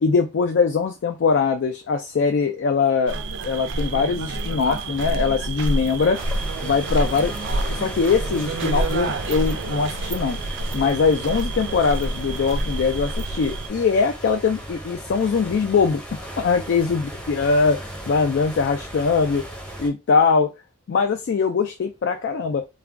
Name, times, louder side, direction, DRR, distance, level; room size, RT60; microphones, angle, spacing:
voice 1, 0.0-3.2 3.4-6.2 6.6-7.3 7.7-10.4 10.7-19.4 19.8-20.5 20.9-22.7, left 5 dB, 55° left, 0.3 m, -22 dB
sound 1, 3.1-13.7, right 2 dB, 60° right, 0.4 m, -28 dB
sound 2, 6.1-19.9, equal, 5° left, 0.8 m, -37 dB
2.3 x 2.1 x 3.5 m
head